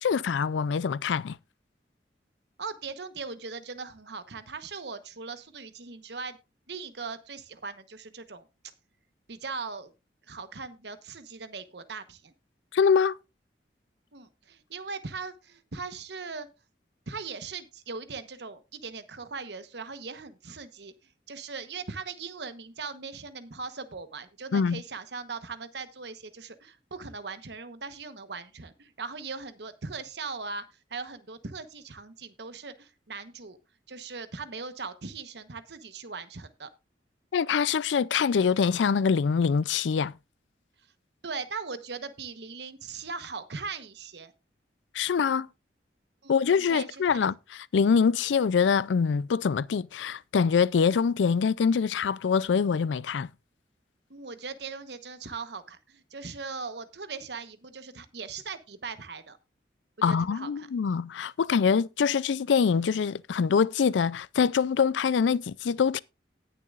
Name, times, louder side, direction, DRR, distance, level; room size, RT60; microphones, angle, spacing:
voice 1, 0.0-1.4 12.7-13.2 24.5-24.8 37.3-40.1 44.9-45.5 46.3-53.3 60.0-66.0, left 6 dB, 90° left, 0.4 m, -24 dB
voice 2, 2.6-6.4 6.7-8.5 9.3-9.9 10.3-12.3 14.1-16.5 17.1-20.9 21.3-30.6 30.9-33.6 33.9-36.7 41.2-44.3 46.2-47.3 54.1-59.4 60.0-60.7, right 4 dB, 70° right, 1.1 m, -39 dB
18.5 x 6.8 x 2.5 m
head